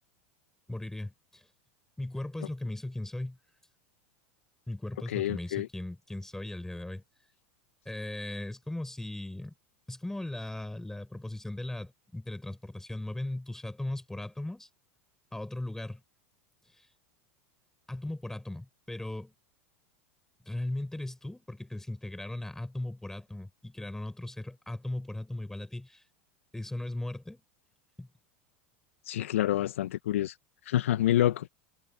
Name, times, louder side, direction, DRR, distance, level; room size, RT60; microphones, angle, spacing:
voice 1, 0.7-1.5 2.0-3.4 4.7-7.0 7.8-9.5 9.9-14.7 15.3-16.0 16.8-16.9 17.9-19.3 20.4-26.0 26.5-27.4 28.0-28.1, left 1 dB, 5° left, 6.3 m, -38 dB
voice 2, 5.1-5.7 29.1-30.3 30.7-31.5, left 12 dB, 80° left, 1.6 m, -27 dB
hypercardioid pair, 95°, 7 cm